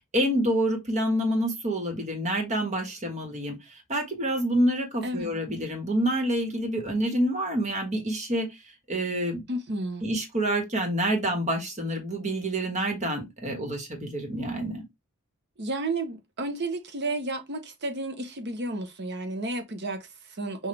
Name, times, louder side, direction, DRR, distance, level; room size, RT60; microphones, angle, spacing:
voice 1, 0.1-3.6 3.9-8.5 8.9-9.4 10.0-14.8, right 1 dB, 30° right, 1.5 m, -27 dB
voice 2, 9.5-10.0 15.6-20.7, right 2 dB, 50° right, 0.9 m, -32 dB
5.9 x 2.6 x 3.3 m
head